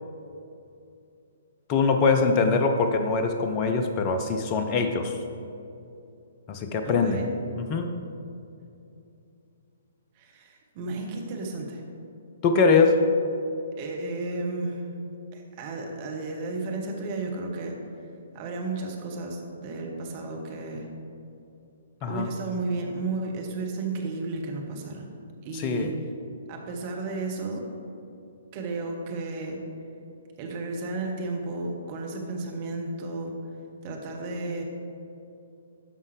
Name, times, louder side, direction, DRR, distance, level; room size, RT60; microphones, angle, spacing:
voice 1, 1.7-5.2 6.5-7.2 7.6-7.9 12.4-13.0 22.0-22.3 25.5-25.9, left 4 dB, 30° left, 6 dB, 0.5 m, -23 dB
voice 2, 6.8-7.3 10.1-11.8 13.8-14.9 15.3-17.8 18.3-20.9 22.1-25.1 25.4-26.0 26.5-27.6 28.5-29.6 30.4-33.3 33.8-34.6, right 3 dB, 35° right, 1 dB, 1.2 m, -33 dB
12.5 x 5.4 x 3.3 m, 2.7 s
figure-of-eight pair, 125°, 0 cm